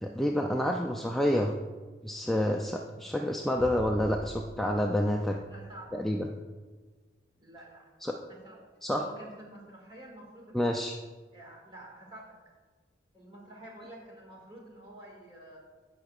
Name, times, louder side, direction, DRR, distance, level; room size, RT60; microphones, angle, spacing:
voice 1, 0.0-1.5 2.0-5.4 5.9-6.3 8.0-8.2 8.8-9.1 10.5-11.0, left 1 dB, ahead, 0 dB, 0.3 m, -28 dB
sound 1, 3.6-6.2, equal, 60° left, 0.7 m, -45 dB
voice 2, 5.4-6.0 7.4-7.9 8.3-8.6 9.0-10.6 11.3-12.4 13.1-15.6, right 1 dB, 25° right, -3 dB, 1.9 m, -49 dB
15.5 x 5.7 x 2.4 m, 1.4 s
head